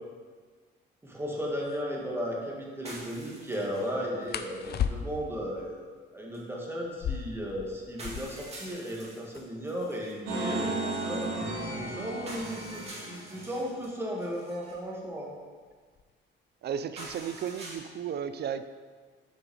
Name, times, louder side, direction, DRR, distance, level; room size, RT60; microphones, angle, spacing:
voice 1, 1.0-5.9 6.1-15.3, equal, 10° right, -2 dB, 1.8 m, -35 dB
sound 1, 1.1-1.2 1.6-1.8 4.3-5.4 6.8-8.5 8.8-8.9 9.1-9.7 10.3-12.9 13.9-14.2 14.6-15.1 15.4-16.1, left 8 dB, 55° left, 0.5 m, -36 dB
sound 2, 2.8-3.9 4.2-4.3 6.3-6.4 7.3-7.4 8.0-10.2 12.3-13.9 14.2-14.8 17.0-17.8, right 1 dB, 30° right, 2.1 m, -46 dB
sound 3, 10.3-13.6, right 2 dB, 80° right, 2.1 m, -34 dB
voice 2, 16.6-18.7, right 8 dB, 55° right, 11 dB, 0.5 m, -34 dB
7.1 x 5.3 x 4.7 m, 1.5 s
cardioid pair, 90°, 20 cm